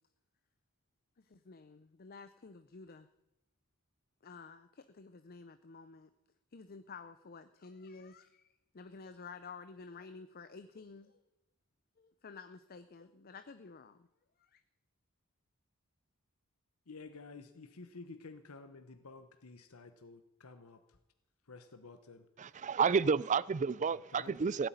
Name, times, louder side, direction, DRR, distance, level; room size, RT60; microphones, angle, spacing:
voice 1, 1.2-3.1 4.2-6.1 6.5-11.2 12.0-14.1 14.4-14.6, left 4 dB, 45° left, 0.6 m, -51 dB
voice 2, 16.9-20.8 21.5-22.2 23.9-24.3, left 3 dB, 85° left, 1.0 m, -51 dB
voice 3, 22.4-24.7, right 5 dB, 35° right, 0.4 m, -30 dB
17.0 x 7.9 x 9.4 m
head